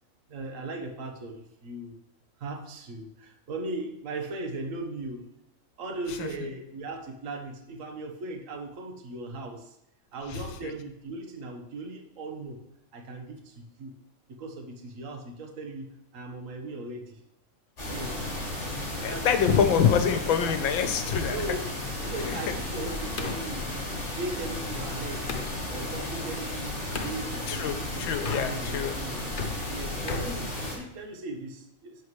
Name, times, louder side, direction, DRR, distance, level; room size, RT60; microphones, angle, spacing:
voice 1, 0.3-2.0 2.4-5.2 5.8-9.8 10.1-12.6 12.9-13.9 14.4-17.2 17.8-18.4 19.1-19.9 21.2-21.7 22.0-23.8 24.2-25.3 25.7-29.3 29.6-32.0, right 2 dB, 45° right, 3 dB, 1.4 m, -38 dB
sound 1, 17.8-30.7, left 1 dB, 35° left, 3.7 m, -34 dB
voice 2, 19.0-21.4 22.2-22.4 27.5-28.9, left 7 dB, 85° left, 8 dB, 1.7 m, -25 dB
sound 2, 20.3-25.6 26.9-27.2 28.1-28.9 29.2-31.2, left 4 dB, 55° left, 0.6 m, -39 dB
11.0 x 7.8 x 3.2 m, 0.85 s
omnidirectional pair, 2.1 m